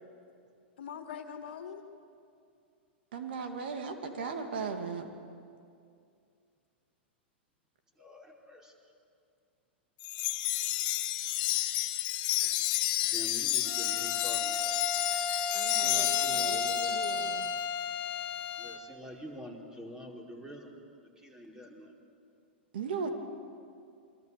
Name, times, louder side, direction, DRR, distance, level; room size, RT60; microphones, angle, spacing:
voice 1, 0.8-1.8 15.5-17.5, left 7 dB, 65° left, 7 dB, 2.1 m, -43 dB
voice 2, 3.1-5.1 22.7-23.1, right 5 dB, 60° right, 5 dB, 2.6 m, -35 dB
voice 3, 8.0-8.7 13.0-14.6 15.7-16.7 18.6-20.7 21.2-21.9, equal, 10° right, 0 dB, 4.5 m, -46 dB
Wind chime, 10.0-17.5, left 15 dB, 50° left, 1.5 m, -31 dB
Bowed string instrument, 13.7-18.9, left 5 dB, 25° left, 1.9 m, -34 dB
27.5 x 24.5 x 6.9 m, 2.4 s
figure-of-eight pair, 105°, 6 cm